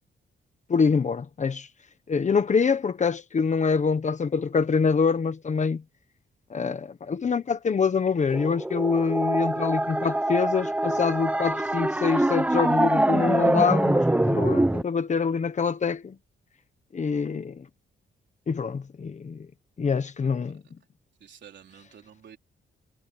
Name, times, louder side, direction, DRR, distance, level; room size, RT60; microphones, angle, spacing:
voice 1, 0.7-1.7 2.1-5.8 6.5-16.2 16.9-17.6 18.5-19.5 19.8-20.6, left 5 dB, 40° left, 1.2 m, -25 dB
sound 1, 8.3-14.8, right 1 dB, 5° right, 0.7 m, -24 dB
voice 2, 21.2-22.4, right 8 dB, 65° right, 3.9 m, -50 dB
wide cardioid pair, 155°, 20 cm